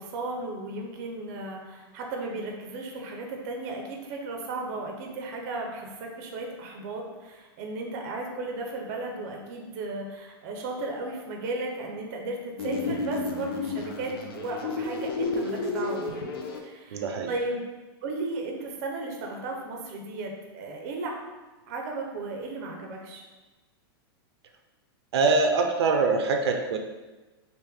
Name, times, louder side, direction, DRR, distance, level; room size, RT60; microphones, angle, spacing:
voice 1, 0.0-16.2 16.6-17.6 18.0-21.2 21.7-23.2, right 2 dB, 40° right, 1 dB, 0.5 m, -35 dB
sound 1, 12.6-16.6, left 3 dB, 65° left, 0.5 m, -31 dB
voice 2, 16.9-17.3 25.1-26.8, right 4 dB, 90° right, 4 dB, 0.5 m, -23 dB
3.2 x 2.5 x 3.4 m, 1.2 s
supercardioid pair, 170°, 13 cm